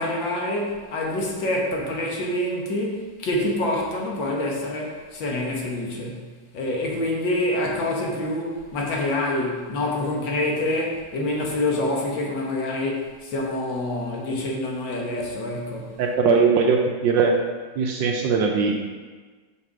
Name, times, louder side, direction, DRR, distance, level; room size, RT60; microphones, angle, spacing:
voice 1, 0.0-6.3 6.5-16.0, left 1 dB, 65° left, -1 dB, 1.7 m, -26 dB
voice 2, 16.0-17.3 17.8-18.8, right 5 dB, 75° right, 1 dB, 1.2 m, -20 dB
5.7 x 5.3 x 4.7 m, 1.4 s
omnidirectional pair, 2.4 m